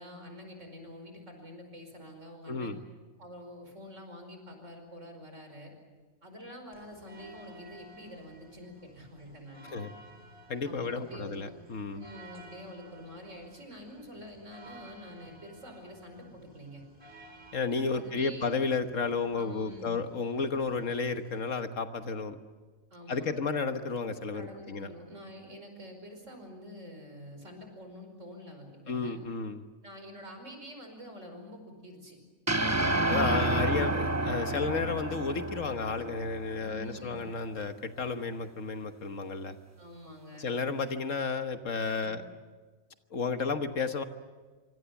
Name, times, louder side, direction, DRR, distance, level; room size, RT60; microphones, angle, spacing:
voice 1, 0.0-2.7 3.2-5.7 6.2-9.7 10.6-11.5 11.9-16.8 17.9-18.5 19.3-20.0 22.9-23.4 24.3-29.2 29.8-32.2 36.6-37.3 39.8-40.6 42.0-42.3, equal, 60° right, 5 dB, 5.4 m, -47 dB
voice 2, 2.5-2.8 9.7-9.9 10.5-12.0 17.5-22.4 23.1-24.9 28.9-29.6 33.1-39.6 40.4-42.2 43.1-44.0, left 4 dB, 65° left, 8 dB, 1.6 m, -32 dB
sound 1, 6.7-21.6, right 1 dB, 40° right, 4.4 m, -55 dB
sound 2, 32.5-36.9, right 2 dB, 15° right, 0.8 m, -30 dB
26.0 x 25.5 x 7.1 m, 1.4 s
omnidirectional pair, 1.4 m